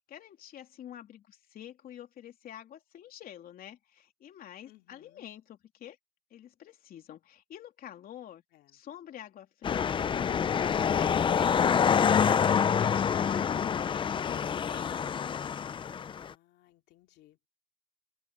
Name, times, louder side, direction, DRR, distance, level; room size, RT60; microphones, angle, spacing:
voice 1, 0.1-6.0 6.3-8.4 8.7-15.1, left 11 dB, 60° left, 3.2 m, -47 dB
voice 2, 4.6-5.3 8.5-8.8 16.2-17.4, left 15 dB, 80° left, 2.8 m, -62 dB
sound 1, 9.6-16.3, left 7 dB, 30° left, 0.5 m, -27 dB
cardioid pair, 110°, 17 cm